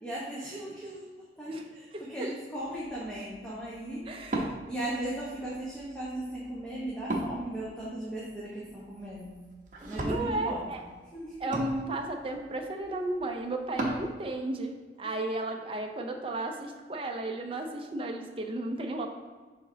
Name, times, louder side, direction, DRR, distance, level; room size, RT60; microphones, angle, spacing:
voice 1, 0.0-4.1 4.7-9.3 9.8-10.7 11.1-11.6, right 1 dB, 5° left, -8 dB, 1.1 m, -37 dB
voice 2, 1.5-2.0 4.1-4.5 9.8-10.8 11.4-19.1, right 2 dB, 30° right, 3 dB, 0.6 m, -34 dB
Wood, 2.6-14.1, right 1 dB, 45° right, 0.9 m, -40 dB
7.0 x 4.9 x 2.8 m, 1.4 s
head